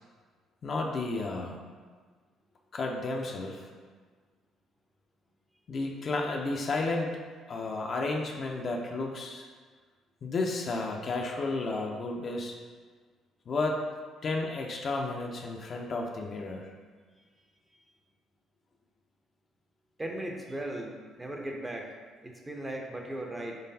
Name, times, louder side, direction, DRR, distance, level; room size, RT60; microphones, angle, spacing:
voice 1, 0.6-1.6 2.7-3.7 5.7-7.1 7.5-9.4 10.2-12.5 13.5-13.8 14.2-16.7, left 3 dB, 50° left, 1 dB, 0.5 m, -32 dB
voice 2, 20.0-21.9 22.2-23.6, right 1 dB, 15° right, 1 dB, 0.5 m, -37 dB
3.9 x 3.3 x 2.7 m, 1.5 s
supercardioid pair, 75°, 0 cm